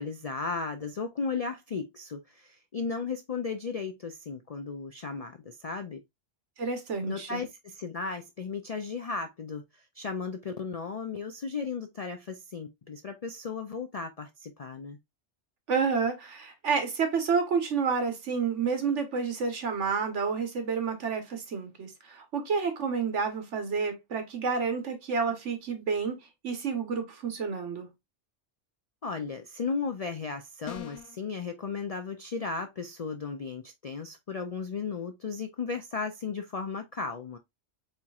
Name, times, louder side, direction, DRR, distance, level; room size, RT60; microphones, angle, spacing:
voice 1, 0.0-6.0 7.0-15.0 29.0-37.4, left 5 dB, 55° left, 0.4 m, -35 dB
voice 2, 6.6-7.4 15.7-26.2 26.4-27.9, right 5 dB, 70° right, 1.5 m, -29 dB
sound 1, 30.7-31.2, left 11 dB, 90° left, 1.1 m, -41 dB
4.4 x 4.1 x 2.3 m
omnidirectional pair, 1.3 m